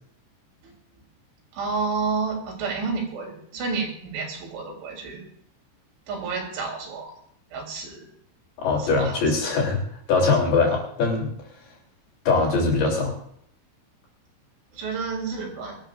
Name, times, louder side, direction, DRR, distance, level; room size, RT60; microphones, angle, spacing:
voice 1, 1.5-5.2 6.1-7.1 7.5-8.1 8.8-9.5 14.7-15.8, right 4 dB, 75° right, -1 dB, 6.1 m, -30 dB
voice 2, 8.6-9.8 10.1-11.3 12.2-13.2, left 4 dB, 55° left, -1 dB, 5.2 m, -22 dB
24.0 x 13.0 x 2.6 m, 0.68 s
omnidirectional pair, 5.5 m